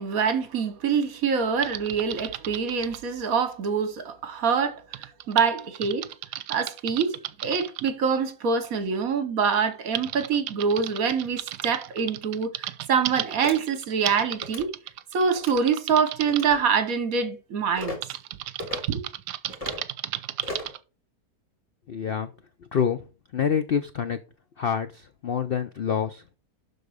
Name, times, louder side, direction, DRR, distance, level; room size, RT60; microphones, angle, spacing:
voice 1, 0.0-6.1 6.5-14.7 15.1-18.0 18.9-19.0, right 6 dB, 60° right, 1.6 m, -25 dB
Typing, 1.6-3.0 4.9-7.9 9.0-9.1 9.5-16.5 18.0-20.8, right 13 dB, 80° right, 1.2 m, -35 dB
sound 1, 13.4-13.6 14.4-14.7 15.3-15.6 16.3-16.6 17.8-18.0 18.6-18.8 19.5-19.8 20.4-20.8, left 2 dB, 20° left, 3.2 m, -35 dB
voice 2, 21.9-22.3 22.7-23.0 23.3-24.2 24.6-26.4, left 7 dB, 75° left, 0.5 m, -27 dB
12.0 x 4.2 x 4.9 m
omnidirectional pair, 1.8 m